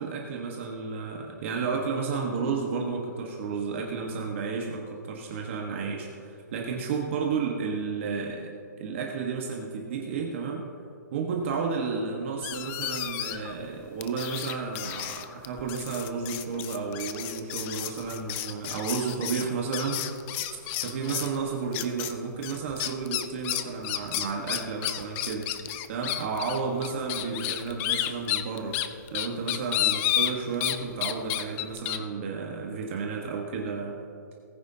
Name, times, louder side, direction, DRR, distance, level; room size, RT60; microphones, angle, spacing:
voice 1, 0.0-8.5 8.8-10.6 11.1-20.2 20.5-28.8 29.1-34.0, right 5 dB, 40° right, 0 dB, 1.3 m, -32 dB
sound 1, 12.4-13.5 14.0-21.4 21.7-22.1 22.4-30.8 31.0-32.0, left 13 dB, 20° left, 0.4 m, -31 dB
19.0 x 9.5 x 2.8 m, 2.5 s
hypercardioid pair, 160°, 10 cm